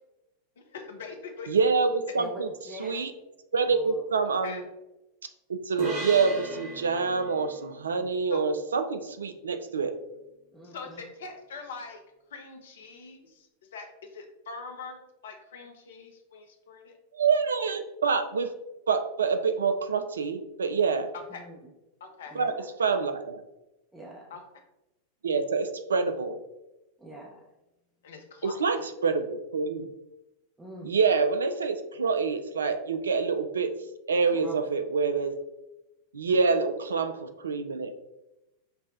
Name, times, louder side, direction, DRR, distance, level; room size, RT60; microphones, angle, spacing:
voice 1, 0.6-1.5 2.1-2.2 4.4-4.6 8.3-8.4 10.6-12.0 12.3-13.5 13.7-17.0 21.1-21.4 22.0-22.4 24.3-24.4 28.0-28.9, left 4 dB, 60° left, 5 dB, 0.5 m, -43 dB
voice 2, 1.5-2.5 2.8-3.1 3.5-4.6 5.5-9.9 17.1-18.5 18.9-21.1 22.3-22.5 22.8-23.4 25.2-26.4 28.4-29.9 30.8-33.7 34.1-35.3 36.1-38.0, right 5 dB, 70° right, 9 dB, 0.3 m, -26 dB
voice 3, 2.1-3.1 3.6-4.0 7.9-8.1 10.5-11.0 21.3-21.7 22.3-22.7 23.9-24.3 27.0-27.5 30.6-30.9 34.4-34.6, equal, 10° right, -3 dB, 0.5 m, -44 dB
sound 1, 5.8-9.3, right 1 dB, 45° right, 0.9 m, -38 dB
5.3 x 2.1 x 2.5 m, 0.95 s
figure-of-eight pair, 90°, 0 cm